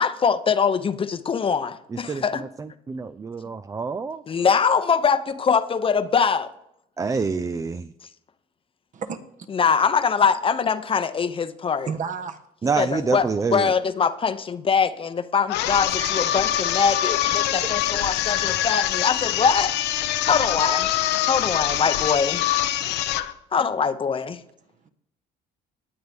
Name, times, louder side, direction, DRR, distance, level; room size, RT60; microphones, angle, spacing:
voice 1, 0.0-2.4 4.3-6.5 9.5-11.9 12.8-19.7 20.2-20.9 21.2-22.4 23.5-24.4, left 6 dB, 30° left, 0.8 m, -23 dB
voice 2, 1.9-4.2 7.0-7.9 12.6-13.7 17.6-17.7, right 4 dB, 20° right, 0.4 m, -27 dB
voice 3, 11.8-12.4 16.0-16.2, right 6 dB, 50° right, 1.3 m, -31 dB
sound 1, 15.5-23.3, left 12 dB, 85° left, 0.8 m, -24 dB
19.0 x 7.9 x 3.5 m
cardioid pair, 110°, 17 cm